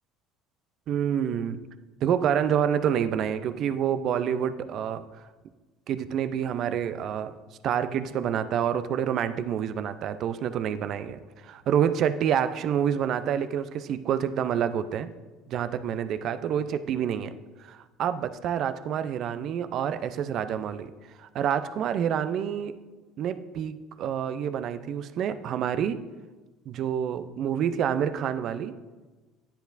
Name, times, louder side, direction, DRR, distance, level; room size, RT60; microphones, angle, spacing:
voice 1, 0.9-1.6 2.0-5.0 5.9-7.3 7.6-15.1 15.5-17.4 17.6-20.9 21.2-22.8 23.2-26.0 26.7-28.8, right 9 dB, 55° right, 12 dB, 0.5 m, -28 dB
10.0 x 9.9 x 2.6 m, 1.3 s
hypercardioid pair, 70°, 0 cm